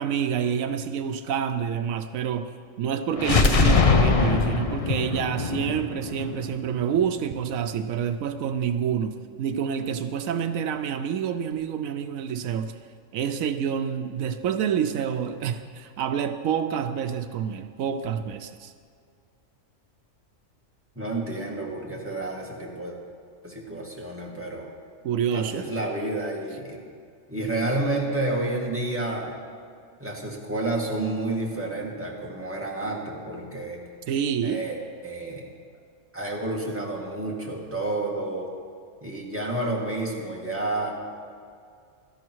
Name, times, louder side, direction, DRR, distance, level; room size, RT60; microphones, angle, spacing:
voice 1, 0.0-2.5 2.8-12.7 13.1-18.7 25.0-25.7 34.1-34.6, right 8 dB, 80° right, 8 dB, 1.0 m, -28 dB
sound 1, 3.2-7.0, left 4 dB, 35° left, 0.6 m, -22 dB
voice 2, 21.0-23.0 23.4-24.7 25.3-26.8 27.3-29.4 30.0-33.8 34.4-34.8 35.0-35.4 36.1-38.5 39.0-40.9, right 2 dB, 10° right, -3 dB, 2.1 m, -30 dB
17.0 x 13.0 x 4.6 m, 2.2 s
omnidirectional pair, 1.4 m